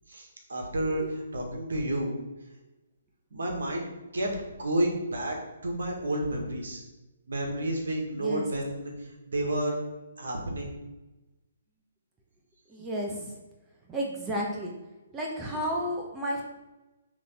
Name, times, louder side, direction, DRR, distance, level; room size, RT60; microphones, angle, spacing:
voice 1, 0.1-2.1 3.3-3.9 4.1-5.4 5.6-6.8 7.3-9.8 10.2-10.7, right 1 dB, 70° right, 1 dB, 1.7 m, -30 dB
voice 2, 12.7-13.3 13.9-14.7 15.1-16.4, equal, 15° right, -1 dB, 1.0 m, -32 dB
6.3 x 3.4 x 5.7 m, 1.1 s
figure-of-eight pair, 135°, 0 cm